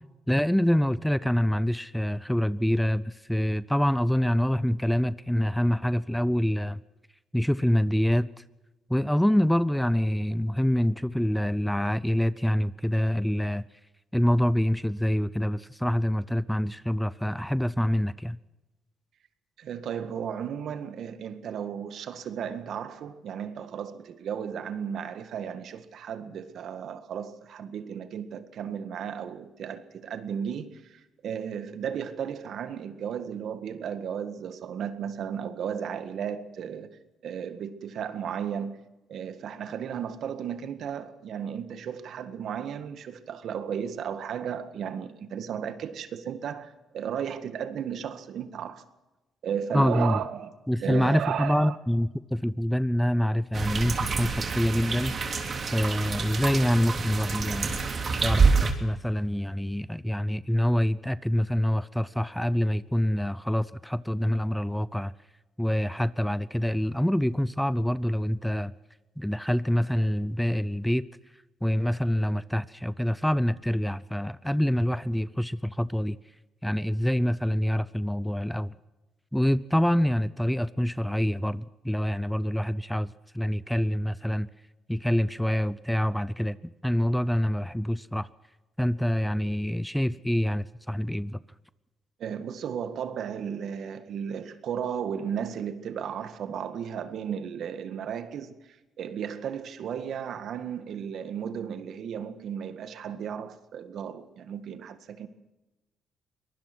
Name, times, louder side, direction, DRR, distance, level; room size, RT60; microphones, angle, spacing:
voice 1, 0.0-6.8 7.3-8.4 8.9-13.6 14.1-18.4 49.7-50.2 50.7-55.2 55.7-57.8 58.2-65.1 65.6-68.7 69.2-71.1 71.6-76.2 76.6-78.7 79.3-84.5 84.9-86.6 86.8-88.3 88.8-91.4, equal, 5° left, 0.7 m, -26 dB
voice 2, 19.6-37.0 37.2-38.8 39.1-48.9 49.4-50.5 50.8-51.8 92.2-105.3, right 8 dB, 70° right, 1.8 m, -34 dB
sound 1, 53.5-58.7, right 4 dB, 45° right, 3.1 m, -27 dB
23.5 x 19.0 x 6.2 m
cardioid pair, 90°, 0 cm